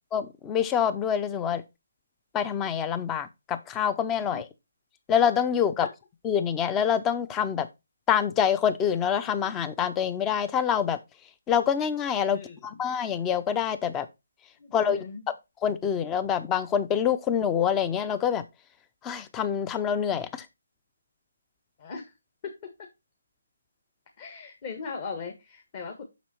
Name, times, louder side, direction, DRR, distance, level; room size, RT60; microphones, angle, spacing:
voice 1, 0.1-1.6 2.3-4.4 5.1-5.9 6.2-7.7 8.1-11.0 11.5-14.1 14.7-15.0 15.6-18.4 19.0-20.5, left 8 dB, 15° left, 0.7 m, -26 dB
voice 2, 12.3-12.8 14.6-15.2 21.8-22.1 22.4-22.9 24.2-26.1, left 5 dB, 30° left, 1.8 m, -39 dB
7.2 x 6.2 x 4.4 m
figure-of-eight pair, 155°, 0 cm